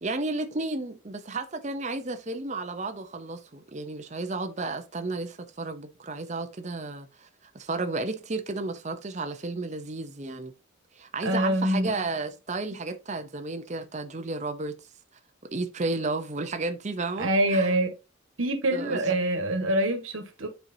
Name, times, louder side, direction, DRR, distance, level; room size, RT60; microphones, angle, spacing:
voice 1, 0.0-7.3 7.5-10.5 10.9-14.8 15.5-17.8 18.7-19.0, right 3 dB, 35° right, 0.7 m, -32 dB
voice 2, 11.2-11.9 17.2-17.9 18.4-20.5, right 1 dB, 80° right, 1.5 m, -25 dB
9.3 x 4.5 x 2.7 m
head